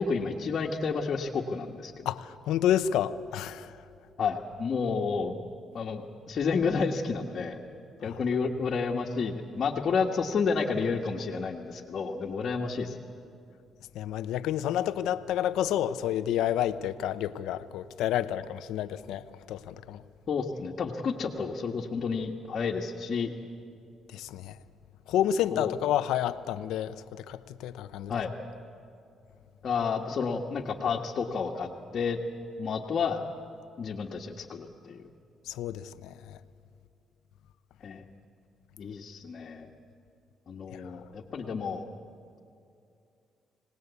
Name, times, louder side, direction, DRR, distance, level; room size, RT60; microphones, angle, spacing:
voice 1, 0.0-2.1 4.2-5.3 5.7-7.6 8.0-13.0 20.3-23.3 25.5-25.7 28.1-28.3 29.6-32.2 32.6-33.2 33.8-35.0 37.8-38.0 38.8-39.7 40.5-41.8, left 5 dB, 55° left, 1.6 m, -30 dB
voice 2, 2.0-3.7 8.0-8.2 13.9-20.0 24.1-24.6 25.1-28.1 35.5-36.4, left 11 dB, 90° left, 0.8 m, -30 dB
26.0 x 19.0 x 8.3 m
cardioid pair, 90°, 0 cm